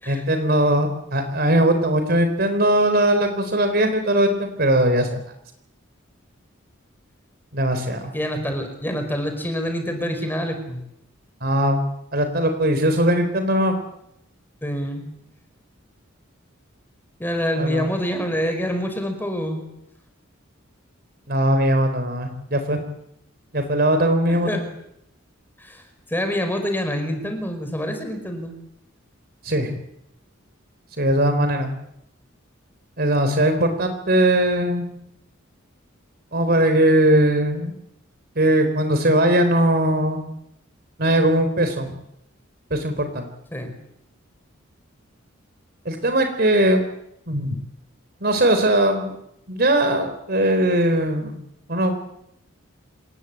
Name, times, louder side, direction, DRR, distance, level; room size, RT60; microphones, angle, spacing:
voice 1, 0.1-5.1 7.5-8.1 11.4-11.8 12.1-13.7 17.6-17.9 21.3-22.8 23.5-24.6 29.4-29.7 31.0-31.7 33.0-34.9 36.3-37.7 38.4-40.2 41.0-41.9 42.7-43.3 45.9-46.8 47.3-47.6 48.2-49.1 49.5-51.4 51.7-52.1, right 1 dB, 50° right, 7 dB, 3.9 m, -20 dB
voice 2, 7.9-10.8 14.6-15.1 17.2-19.6 24.3-24.6 25.6-25.8 26.1-28.5 43.5-43.7, equal, 10° left, 6 dB, 4.8 m, -26 dB
27.0 x 20.5 x 8.8 m, 0.78 s
head